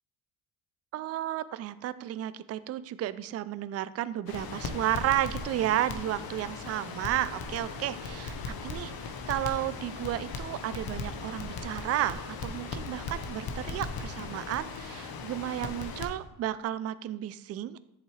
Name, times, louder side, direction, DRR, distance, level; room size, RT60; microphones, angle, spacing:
voice 1, 0.9-17.8, right 12 dB, 35° right, 15 dB, 0.4 m, -32 dB
Crackle, 4.3-16.1, left 4 dB, 50° left, 1.1 m, -38 dB
8.0 x 6.9 x 3.3 m, 0.87 s
supercardioid pair, 75°, 45 cm